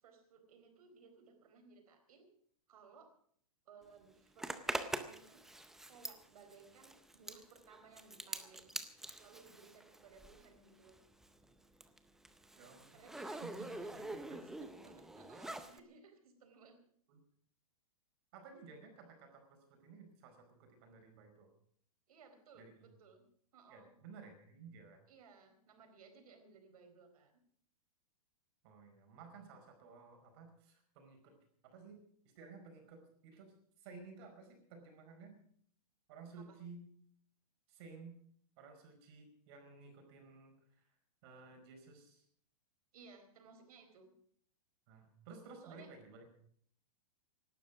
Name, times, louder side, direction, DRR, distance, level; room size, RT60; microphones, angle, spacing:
voice 1, 0.0-2.3 2.7-3.1 3.7-5.4 5.8-8.8 9.2-11.0 12.9-13.9 14.4-16.8 22.1-23.2 23.5-23.9 25.1-27.4 36.4-36.6 42.9-44.1 45.6-45.9, right 5 dB, 70° right, 6 dB, 4.2 m, -60 dB
Zipper (clothing), 4.4-10.6 10.8-15.8, right 1 dB, ahead, 0.5 m, -45 dB
voice 2, 12.5-14.6 17.1-17.2 18.3-21.5 22.5-22.9 23.7-25.0 28.6-31.3 31.6-32.0 32.3-35.4 36.1-36.9 37.7-38.2 38.6-40.9 41.2-42.2 44.9-46.2, right 4 dB, 40° right, 4 dB, 4.8 m, -55 dB
18.0 x 12.0 x 6.1 m, 0.63 s
hypercardioid pair, 160°, 20 cm